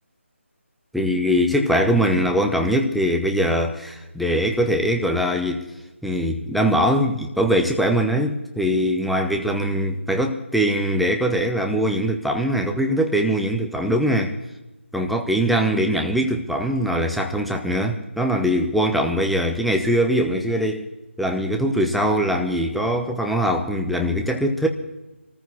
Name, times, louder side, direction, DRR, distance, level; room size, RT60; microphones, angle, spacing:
voice 1, 0.9-5.7 6.0-14.4 14.9-20.9 21.2-24.7, equal, ahead, 3 dB, 0.7 m, -22 dB
25.0 x 14.0 x 3.1 m, 0.98 s
figure-of-eight pair, 160°, 7 cm